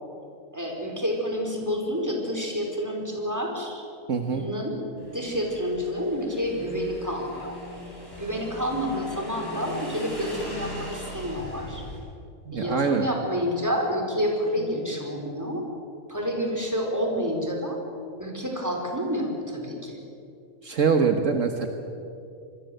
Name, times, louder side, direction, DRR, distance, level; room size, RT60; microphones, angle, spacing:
voice 1, 0.5-3.8 4.3-4.7 5.1-7.6 8.2-11.8 12.5-15.6 16.1-17.8 18.2-20.0, equal, 10° right, 0 dB, 4.7 m, -29 dB
voice 2, 4.1-4.4 12.5-13.1 20.6-21.7, right 5 dB, 60° right, 5 dB, 1.7 m, -23 dB
Motorcycle / Engine, 5.0-12.0, left 1 dB, 15° left, 7.8 m, -39 dB
27.0 x 21.5 x 8.0 m, 2.6 s
omnidirectional pair, 1.5 m